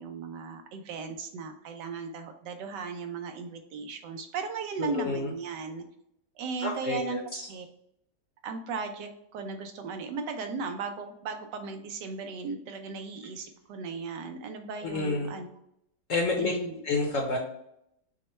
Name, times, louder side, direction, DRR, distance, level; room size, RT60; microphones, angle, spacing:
voice 1, 0.0-5.9 6.4-7.7 8.4-15.5 16.4-16.7, right 5 dB, 80° right, 6 dB, 1.2 m, -36 dB
voice 2, 4.8-5.3 6.6-7.4 14.8-15.3 16.1-16.5 16.8-17.4, left 3 dB, 60° left, 0 dB, 0.9 m, -29 dB
6.4 x 2.2 x 3.0 m, 0.77 s
omnidirectional pair, 1.9 m